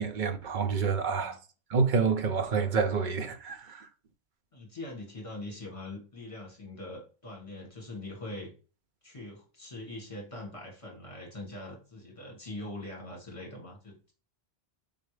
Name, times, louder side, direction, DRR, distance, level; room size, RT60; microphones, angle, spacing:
voice 1, 0.0-1.4 1.7-3.9, right 5 dB, 55° right, 0.6 m, -28 dB
voice 2, 4.5-8.5 9.0-14.1, left 2 dB, 30° left, 1.6 m, -42 dB
4.3 x 3.8 x 3.2 m
omnidirectional pair, 1.1 m